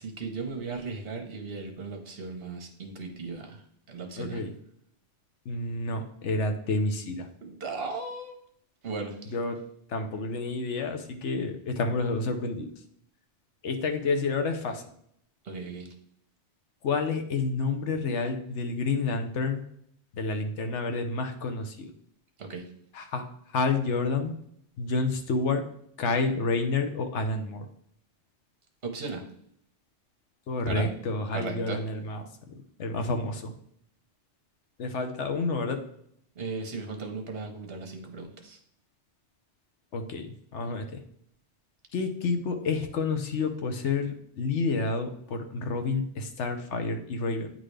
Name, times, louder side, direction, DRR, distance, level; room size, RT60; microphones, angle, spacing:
voice 1, 0.0-3.6 3.9-4.4 7.4-8.4 8.8-9.3 15.4-15.9 22.4-22.6 28.8-29.2 30.7-30.9 31.3-31.8 36.3-38.6, right 4 dB, 55° right, 4 dB, 1.3 m, -36 dB
voice 2, 4.2-4.5 5.4-7.3 9.3-9.6 9.9-12.7 13.6-14.8 16.8-19.6 20.1-21.9 22.9-23.2 23.5-24.3 24.8-25.6 26.0-27.7 30.5-32.2 32.8-33.5 34.8-35.8 39.9-41.0 41.9-47.5, left 3 dB, 75° left, 6 dB, 1.1 m, -29 dB
9.2 x 3.8 x 3.3 m, 0.69 s
omnidirectional pair, 1.2 m